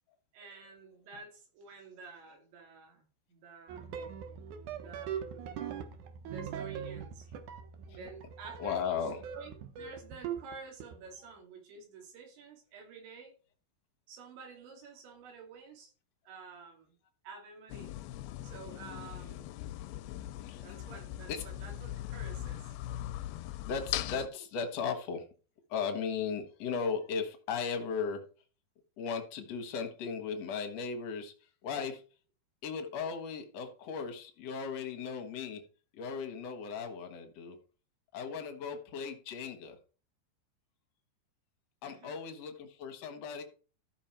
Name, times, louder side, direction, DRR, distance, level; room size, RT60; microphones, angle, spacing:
voice 1, 0.3-4.2 4.7-5.7 6.2-7.3 7.9-13.3 14.1-15.9 16.3-17.0 17.2-18.0 18.4-19.6 20.6-22.7 41.8-42.2, right 4 dB, 90° right, 2 dB, 4.8 m, -50 dB
sound 1, 3.7-10.5 10.8-11.1, right 8 dB, 70° right, 1.9 m, -41 dB
voice 2, 8.6-9.2 20.4-20.6 21.3-21.4 23.6-25.2 25.7-28.3 29.0-32.0 32.6-35.6 35.9-37.6 38.1-39.8 41.8-43.4, left 6 dB, 65° left, 7 dB, 1.6 m, -36 dB
sound 2, 17.7-24.3, left 13 dB, 85° left, 2.3 m, -40 dB
14.0 x 5.8 x 4.5 m, 0.38 s
omnidirectional pair, 5.0 m